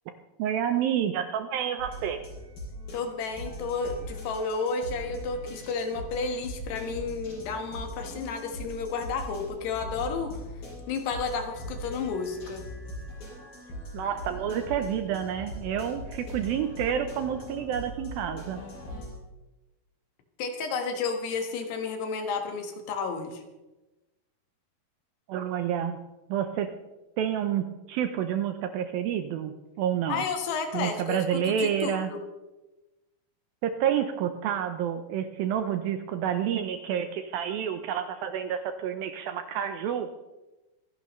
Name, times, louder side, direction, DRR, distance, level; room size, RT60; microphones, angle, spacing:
voice 1, 0.4-2.2 13.9-18.6 25.3-26.0 26.3-26.7 27.2-30.2 30.7-32.1 33.6-40.1, right 9 dB, 80° right, 7 dB, 2.2 m, -29 dB
sound 1, 1.8-19.2, equal, 60° left, 7.5 m, -40 dB
voice 2, 2.9-10.4 10.9-12.6 20.4-23.4 30.1-32.2, left 4 dB, 80° left, 5 dB, 3.6 m, -32 dB
25.0 x 11.0 x 3.1 m, 1.1 s
omnidirectional pair, 4.8 m